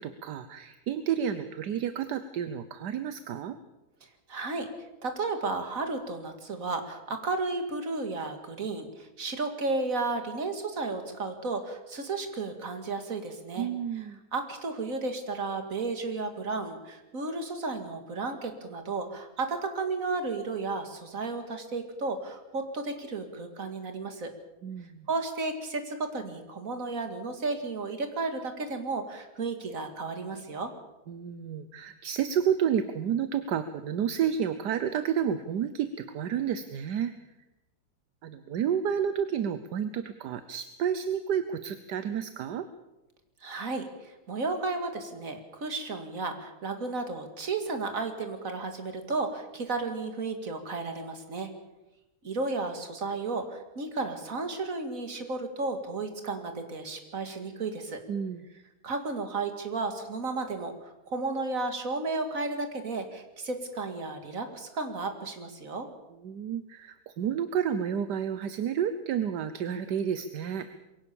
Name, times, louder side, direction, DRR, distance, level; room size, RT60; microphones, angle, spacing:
voice 1, 0.0-3.6 13.6-14.2 24.6-25.1 31.1-37.1 38.2-42.7 58.1-58.4 66.2-70.7, right 8 dB, 75° right, 11 dB, 1.4 m, -30 dB
voice 2, 4.3-4.7 5.0-13.7 14.3-24.3 25.1-30.7 43.4-51.5 52.2-58.0 58.8-65.9, right 3 dB, 50° right, 6 dB, 2.6 m, -33 dB
22.5 x 17.0 x 7.1 m, 0.99 s
omnidirectional pair, 1.8 m